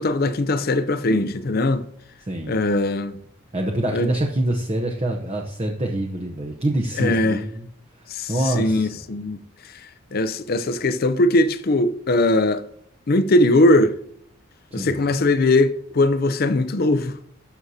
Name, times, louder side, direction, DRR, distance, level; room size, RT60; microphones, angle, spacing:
voice 1, 0.0-1.8 2.5-3.2 3.9-4.1 7.0-7.4 8.1-9.4 10.1-12.6 13.1-14.0 14.7-17.1, left 2 dB, 45° left, 0.5 m, -20 dB
voice 2, 2.3-2.6 3.5-7.7 8.3-9.0 14.7-15.0, right 1 dB, 30° right, 0.7 m, -25 dB
12.5 x 6.2 x 2.8 m
head